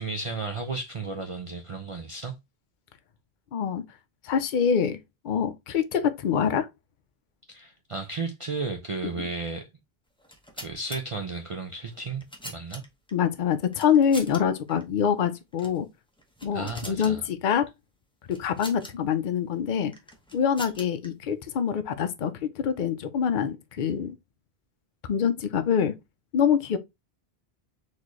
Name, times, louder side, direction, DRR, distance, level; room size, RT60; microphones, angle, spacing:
voice 1, 0.0-2.3 7.5-9.7 10.6-12.8 16.5-17.2, right 3 dB, 40° right, 0.5 m, -34 dB
voice 2, 3.5-3.8 4.2-5.0 5.2-6.7 13.1-15.9 16.4-17.7 18.3-19.9 20.3-24.2 25.1-25.9 26.3-26.8, left 7 dB, 55° left, 0.7 m, -25 dB
sound 1, 10.2-11.0 11.9-13.1 13.7-14.4 14.7-14.8 15.5-15.8 16.2-17.1 18.3-18.9 19.9-21.1, left 1 dB, 5° left, 0.8 m, -42 dB
4.2 x 3.1 x 3.0 m
omnidirectional pair, 1.1 m